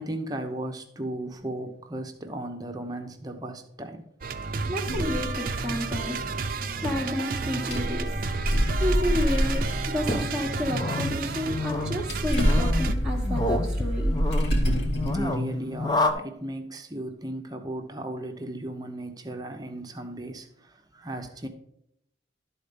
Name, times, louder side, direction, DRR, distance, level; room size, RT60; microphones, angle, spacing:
voice 1, 0.0-4.0 7.6-7.7 15.0-21.5, right 1 dB, 20° right, 0.9 m, -36 dB
sound 1, 4.2-13.0, right 4 dB, 45° right, 0.5 m, -32 dB
voice 2, 4.7-6.2 6.8-8.1 8.8-14.1, left 1 dB, 5° right, 1.2 m, -31 dB
sound 2, 4.9-6.4 6.9-7.0 7.5-11.4 11.7-15.2, equal, 65° left, 2.2 m, -26 dB
sound 3, 10.1-16.1, left 2 dB, 20° left, 0.6 m, -30 dB
12.5 x 4.3 x 5.3 m
head